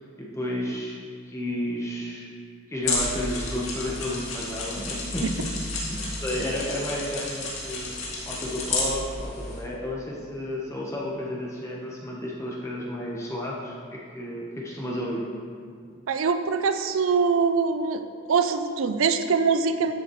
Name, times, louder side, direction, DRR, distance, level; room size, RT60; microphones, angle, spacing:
voice 1, 0.2-1.0 1.3-2.3 2.7-7.9 8.2-15.2, left 1 dB, 15° left, -4 dB, 1.0 m, -32 dB
sound 1, 2.8-9.6, left 2 dB, 85° left, 2.1 m, -31 dB
voice 2, 16.1-18.0 18.3-19.9, right 5 dB, 80° right, 8 dB, 0.5 m, -23 dB
12.0 x 6.9 x 3.1 m, 2.1 s
head